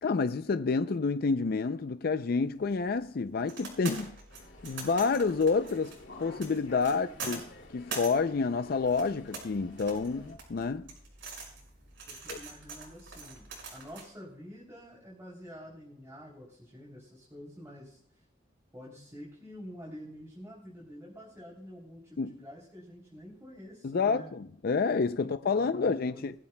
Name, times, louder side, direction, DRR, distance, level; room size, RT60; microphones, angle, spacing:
voice 1, 0.0-4.1 4.6-5.9 6.2-7.4 7.7-10.9 12.3-12.4 22.2-22.3 23.8-26.3, left 4 dB, 55° left, 0.4 m, -29 dB
sound 1, 2.4-14.1, right 4 dB, 75° right, 5.8 m, -44 dB
sound 2, 4.3-10.4, left 2 dB, 80° left, 2.6 m, -51 dB
voice 2, 6.9-7.3 12.1-18.2 18.7-24.3 25.2-26.3, equal, 15° right, 3.1 m, -48 dB
20.5 x 14.0 x 2.2 m
head